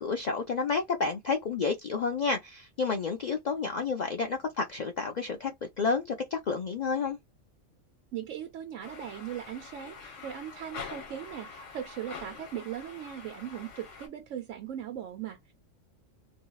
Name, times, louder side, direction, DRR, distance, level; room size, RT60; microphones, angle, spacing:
voice 1, 0.0-7.2, left 4 dB, 90° left, 0.3 m, -30 dB
voice 2, 8.1-15.5, right 10 dB, 70° right, 1.0 m, -39 dB
sound 1, 8.8-14.1, left 5 dB, 70° left, 1.3 m, -45 dB
3.0 x 2.6 x 2.3 m
omnidirectional pair, 1.4 m